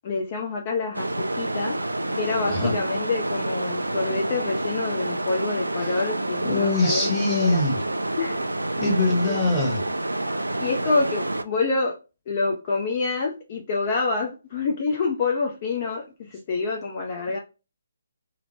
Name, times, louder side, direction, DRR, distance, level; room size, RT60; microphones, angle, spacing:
voice 1, 0.0-1.8 2.1-7.6 8.2-8.4 9.2-9.4 10.6-11.9 12.3-17.4, left 4 dB, 35° left, 0.4 m, -27 dB
sound 1, 0.9-11.4, right 1 dB, 80° right, 0.3 m, -28 dB
voice 2, 6.4-7.8 8.8-9.8, left 2 dB, 5° left, 0.9 m, -23 dB
2.9 x 2.0 x 2.6 m
figure-of-eight pair, 140°, 0 cm